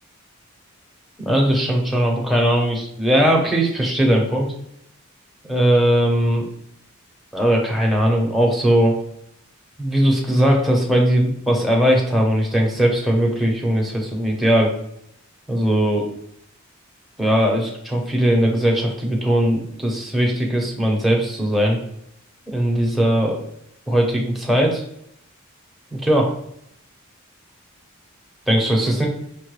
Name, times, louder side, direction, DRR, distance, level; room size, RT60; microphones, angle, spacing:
voice 1, 1.2-4.5 5.5-6.4 7.3-9.0 9.8-14.7 15.5-16.0 17.2-21.8 22.5-23.4 23.9-24.8 25.9-26.3 28.5-29.1, right 1 dB, ahead, -2 dB, 0.7 m, -19 dB
5.2 x 2.2 x 3.1 m, 0.74 s
head